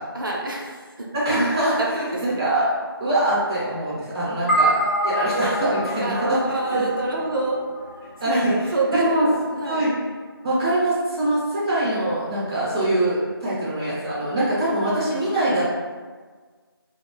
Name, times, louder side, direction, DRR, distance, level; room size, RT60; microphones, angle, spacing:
voice 1, 0.1-1.1 1.7-2.4 4.3-4.8 6.0-7.6 8.5-9.8 13.5-13.9 14.6-14.7, right 2 dB, 60° right, -2 dB, 0.5 m, -28 dB
voice 2, 1.1-1.8 2.2-2.7 3.0-4.7 5.0-6.4 6.7-6.9 8.2-9.3 9.5-9.9 10.4-15.7, right 1 dB, 10° right, -14 dB, 0.6 m, -23 dB
sound 1, 4.5-9.0, right 1 dB, 40° left, 0.5 m, -26 dB
2.9 x 2.0 x 2.9 m, 1.5 s
figure-of-eight pair, 175°, 13 cm